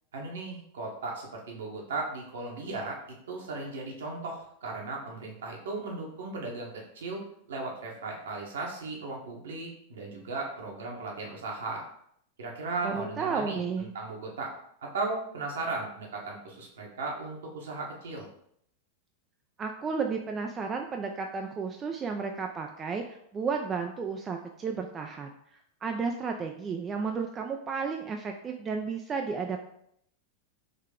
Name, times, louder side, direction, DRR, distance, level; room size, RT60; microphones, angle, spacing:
voice 1, 0.1-3.0 3.3-11.9 12.4-14.5 14.8-18.3, right 3 dB, 60° right, -1 dB, 1.1 m, -36 dB
voice 2, 12.8-13.9 19.6-25.3 25.8-29.6, right 5 dB, 25° right, 3 dB, 0.4 m, -33 dB
3.9 x 3.1 x 3.6 m, 0.71 s
figure-of-eight pair, 90°, 0 cm